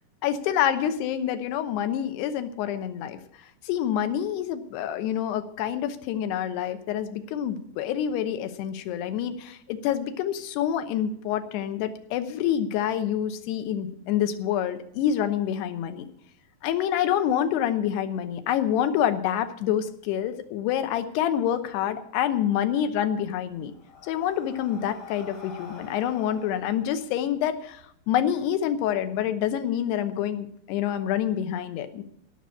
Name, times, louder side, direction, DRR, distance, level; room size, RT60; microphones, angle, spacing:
voice 1, 0.2-3.2 3.6-16.1 16.6-23.7 24.0-32.0, left 10 dB, 80° left, 9 dB, 2.9 m, -27 dB
Breathing, 23.4-27.8, left 5 dB, 35° left, 2.7 m, -47 dB
16.5 x 6.0 x 8.5 m, 0.71 s
omnidirectional pair, 4.8 m